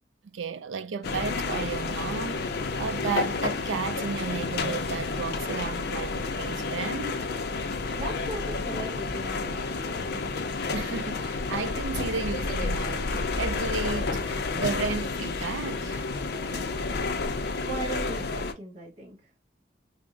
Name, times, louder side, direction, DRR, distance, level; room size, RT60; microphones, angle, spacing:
voice 1, 0.2-2.5 2.8-7.3 7.9-8.0 10.7-16.1, right 5 dB, 80° right, 0.4 m, -33 dB
sound 1, 1.0-18.5, left 3 dB, 55° left, 0.4 m, -30 dB
voice 2, 7.9-10.2 16.5-16.7 17.0-19.3, right 2 dB, 35° right, 1.0 m, -39 dB
3.5 x 2.0 x 3.6 m
head